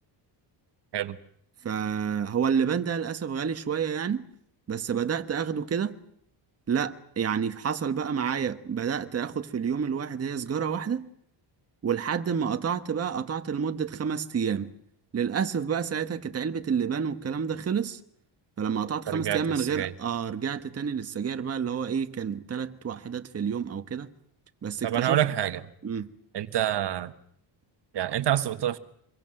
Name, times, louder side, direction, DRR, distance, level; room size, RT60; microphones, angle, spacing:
voice 1, 1.6-4.3 4.7-6.0 6.7-11.1 11.8-14.7 15.1-18.0 18.6-24.1 24.6-25.2 25.8-26.1, right 7 dB, 35° right, 1.3 m, -29 dB
voice 2, 19.1-19.9 24.8-25.6 26.3-27.1 27.9-28.8, right 11 dB, 60° right, 1.4 m, -27 dB
25.5 x 22.5 x 7.7 m
cardioid pair, 135°, 45 cm